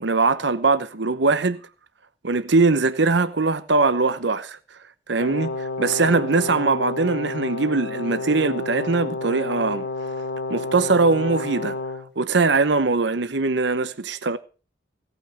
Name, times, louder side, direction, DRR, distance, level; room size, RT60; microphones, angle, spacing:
voice 1, 0.0-1.6 2.2-4.6 5.1-9.9 10.5-11.8 12.2-14.4, right 3 dB, 70° right, 0.9 m, -21 dB
Brass instrument, 5.2-12.1, left 2 dB, 70° left, 3.0 m, -30 dB
17.5 x 9.1 x 5.6 m
head